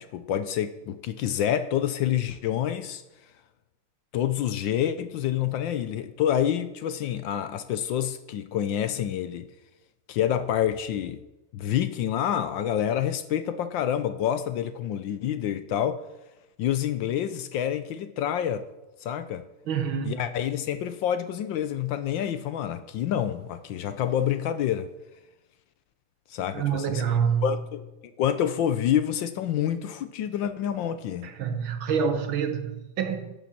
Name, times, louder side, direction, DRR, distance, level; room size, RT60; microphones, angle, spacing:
voice 1, 0.0-3.0 4.1-9.5 10.1-11.2 11.5-16.0 16.6-18.7 19.0-19.4 20.0-24.9 26.3-27.0 27.4-27.8 28.2-31.3, left 10 dB, 70° left, 1.3 m, -27 dB
voice 2, 19.7-20.2 26.5-27.6 31.2-33.3, right 7 dB, 70° right, 1.9 m, -27 dB
11.5 x 7.3 x 7.3 m
omnidirectional pair, 2.3 m